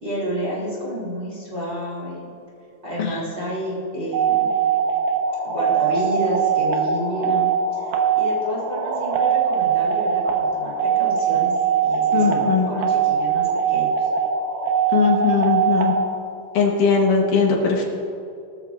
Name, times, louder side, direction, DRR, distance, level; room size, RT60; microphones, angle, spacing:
voice 1, 0.0-2.3 2.8-4.6 5.4-11.5 11.8-14.1, equal, 20° right, -6 dB, 3.2 m, -30 dB
sound 1, 4.1-16.2, right 8 dB, 75° right, 2.7 m, -21 dB
voice 2, 12.1-12.7 14.9-15.9 16.5-17.8, left 5 dB, 75° left, 0 dB, 2.8 m, -19 dB
21.0 x 13.0 x 2.5 m, 2.6 s
omnidirectional pair, 3.8 m